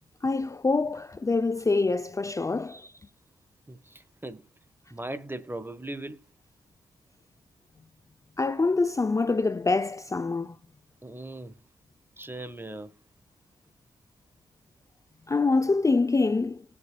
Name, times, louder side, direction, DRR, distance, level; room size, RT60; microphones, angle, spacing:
voice 1, 0.2-2.9 8.4-10.6 15.3-16.6, left 3 dB, 20° left, 0.5 m, -25 dB
voice 2, 3.7-4.4 4.9-6.2 11.0-11.6 12.2-12.9, right 2 dB, 15° right, 1.3 m, -38 dB
19.0 x 7.4 x 2.3 m
cardioid pair, 55°, 15 cm